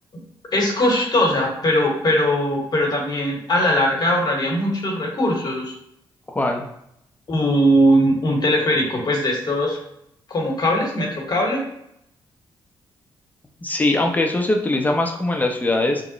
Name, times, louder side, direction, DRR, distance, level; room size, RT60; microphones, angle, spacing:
voice 1, 0.5-5.7 7.3-9.8 10.3-11.6, equal, 45° left, 0 dB, 1.1 m, -20 dB
voice 2, 6.3-6.6 13.6-16.0, left 2 dB, 15° left, 2 dB, 0.6 m, -21 dB
3.0 x 2.2 x 3.8 m, 0.75 s
cardioid pair, 80°, 9 cm